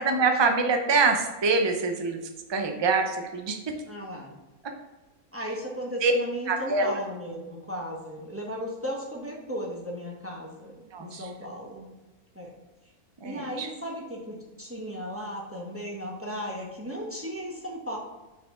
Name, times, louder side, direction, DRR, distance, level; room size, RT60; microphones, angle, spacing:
voice 1, 0.0-2.2 2.5-3.6 6.0-6.1 6.5-6.9 10.9-11.3 13.2-13.7, right 4 dB, 45° right, 4 dB, 0.3 m, -25 dB
voice 2, 3.9-4.3 5.3-11.9 12.3-12.5 13.2-18.0, equal, 10° right, -2 dB, 0.8 m, -36 dB
6.1 x 4.8 x 3.7 m, 1.1 s
omnidirectional pair, 1.6 m